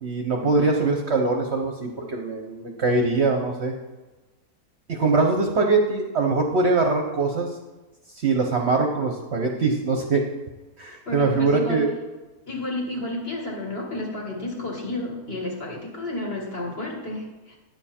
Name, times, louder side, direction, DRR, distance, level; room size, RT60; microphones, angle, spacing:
voice 1, 0.0-3.7 4.9-7.5 8.1-10.2 10.8-11.9, right 3 dB, 50° right, 3 dB, 1.0 m, -22 dB
voice 2, 11.1-11.8 12.5-17.6, left 1 dB, 40° left, -1 dB, 2.1 m, -31 dB
9.6 x 7.0 x 4.3 m, 1.2 s
omnidirectional pair, 1.6 m